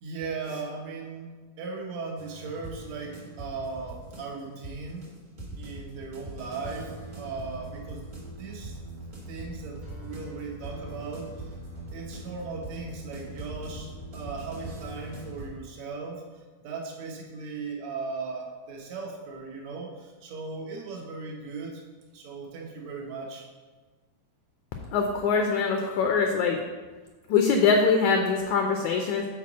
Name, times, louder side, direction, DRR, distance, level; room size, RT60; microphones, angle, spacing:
voice 1, 0.0-1.3 1.6-5.0 5.6-6.9 7.2-8.1 8.4-8.8 9.3-11.5 11.9-16.2 16.6-21.8 22.1-23.5, right 4 dB, 65° right, 0 dB, 1.9 m, -37 dB
sound 1, 2.2-15.5, right 1 dB, 35° right, 1.3 m, -41 dB
voice 2, 24.9-26.6 27.3-29.3, left 5 dB, 80° left, 3 dB, 1.7 m, -23 dB
6.0 x 4.4 x 6.0 m, 1.3 s
omnidirectional pair, 3.9 m